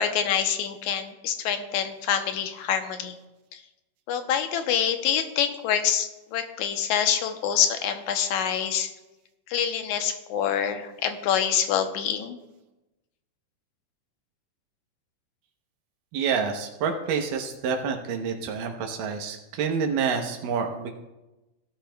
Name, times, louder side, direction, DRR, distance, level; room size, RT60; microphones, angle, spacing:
voice 1, 0.0-3.2 3.5-3.6 4.1-8.9 9.5-12.4, left 8 dB, 75° left, 7 dB, 2.0 m, -26 dB
voice 2, 16.1-20.9, right 6 dB, 85° right, 3 dB, 2.6 m, -28 dB
16.5 x 12.0 x 2.2 m, 1.0 s
omnidirectional pair, 3.8 m